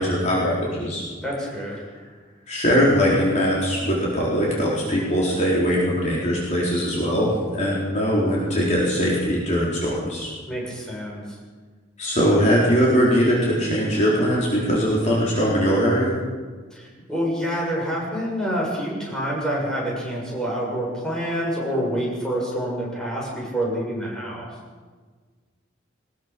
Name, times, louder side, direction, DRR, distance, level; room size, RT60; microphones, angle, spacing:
voice 1, 0.0-1.0 2.5-10.3 12.0-16.1, equal, 40° left, -5 dB, 4.2 m, -21 dB
voice 2, 1.2-1.8 10.5-11.4 16.7-24.5, equal, 5° left, -4 dB, 7.2 m, -27 dB
21.5 x 20.5 x 6.1 m, 1.5 s
head